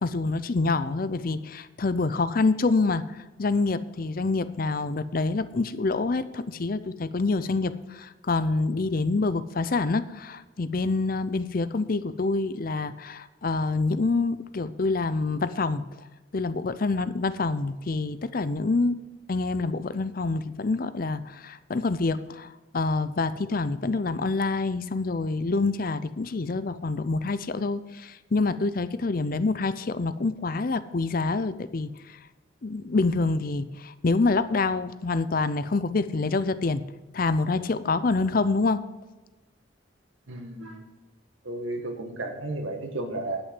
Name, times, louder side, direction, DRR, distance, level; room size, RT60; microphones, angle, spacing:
voice 1, 0.0-3.0 3.4-15.8 16.3-19.0 19.3-31.9 32.6-36.8 37.1-38.8, left 3 dB, 45° left, 14 dB, 0.5 m, -26 dB
voice 2, 40.3-40.9 41.4-43.4, right 2 dB, 80° right, 4 dB, 1.7 m, -33 dB
11.0 x 6.3 x 7.5 m, 1.1 s
head